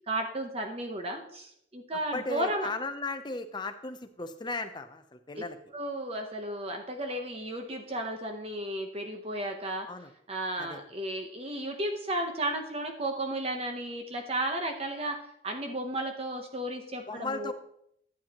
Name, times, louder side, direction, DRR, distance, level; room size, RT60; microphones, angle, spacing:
voice 1, 0.1-2.7 5.7-9.9 10.3-17.5, right 1 dB, 30° right, 4 dB, 0.8 m, -34 dB
voice 2, 2.1-5.6 9.9-10.1 10.6-10.8 17.1-17.5, left 3 dB, 25° left, 8 dB, 0.6 m, -36 dB
11.5 x 8.7 x 2.9 m, 0.74 s
head